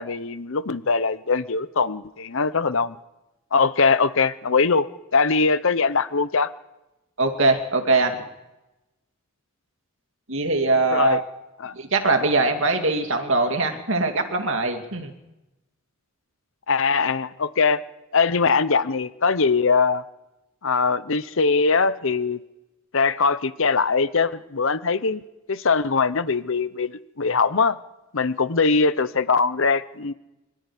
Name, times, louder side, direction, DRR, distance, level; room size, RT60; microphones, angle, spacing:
voice 1, 0.0-3.0 3.5-4.9 5.1-6.5 10.9-11.2 11.6-11.7 16.7-17.8 18.1-20.0 20.6-22.4 22.9-25.2 25.5-27.8 28.1-30.1, left 4 dB, 65° left, 15 dB, 0.9 m, -21 dB
voice 2, 7.2-8.2 10.3-11.3 11.7-15.1, right 3 dB, 65° right, 5 dB, 2.6 m, -22 dB
23.5 x 13.0 x 10.0 m, 0.99 s
head